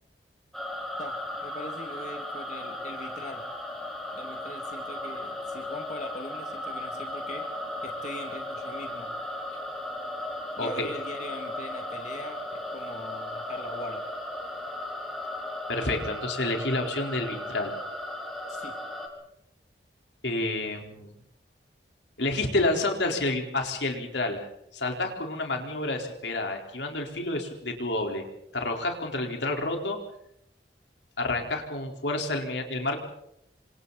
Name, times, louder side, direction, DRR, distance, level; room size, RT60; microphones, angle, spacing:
sound 1, 0.5-19.1, left 1 dB, ahead, 4.1 m, -36 dB
voice 1, 1.0-3.5 4.1-7.5 7.8-9.1 10.6-14.1 18.5-18.7, left 1 dB, 40° left, 3 dB, 2.5 m, -41 dB
voice 2, 10.6-10.9 15.7-17.7 20.2-21.1 22.2-24.5 24.7-28.2 28.5-30.0 31.2-33.0, left 2 dB, 85° left, 2 dB, 4.3 m, -29 dB
28.5 x 26.0 x 4.2 m, 0.76 s
head